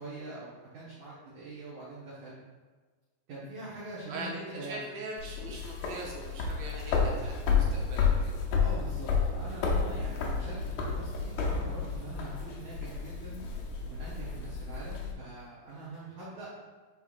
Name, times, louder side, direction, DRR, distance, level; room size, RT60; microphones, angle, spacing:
voice 1, 0.0-2.4 3.3-4.8 8.6-13.4 13.8-16.6, right 2 dB, 60° right, -9 dB, 2.3 m, -43 dB
voice 2, 4.1-8.4, right 2 dB, 75° right, -2 dB, 2.4 m, -42 dB
sound 1, 5.2-15.1, left 5 dB, 80° left, 1.7 m, -31 dB
8.8 x 4.5 x 2.4 m, 1.4 s
omnidirectional pair, 4.5 m